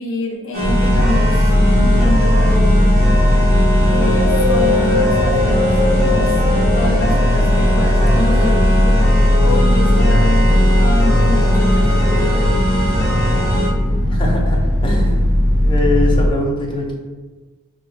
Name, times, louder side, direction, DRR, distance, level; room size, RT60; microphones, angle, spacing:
voice 1, 0.0-2.8 3.8-6.3 6.7-8.6 9.4-12.0, left 1 dB, 65° left, 1 dB, 0.6 m, -26 dB
sound 1, 0.5-13.7, equal, 45° right, 1.3 m, -21 dB
sound 2, 0.6-16.3, left 1 dB, 75° right, 0.6 m, -16 dB
Wind, 3.9-7.4 8.0-9.2 9.8-9.9, left 3 dB, 30° right, 0.7 m, -23 dB
voice 2, 14.0-15.3 15.6-17.0, left 1 dB, 25° left, -2 dB, 0.6 m, -22 dB
4.7 x 2.3 x 3.1 m, 1.3 s
head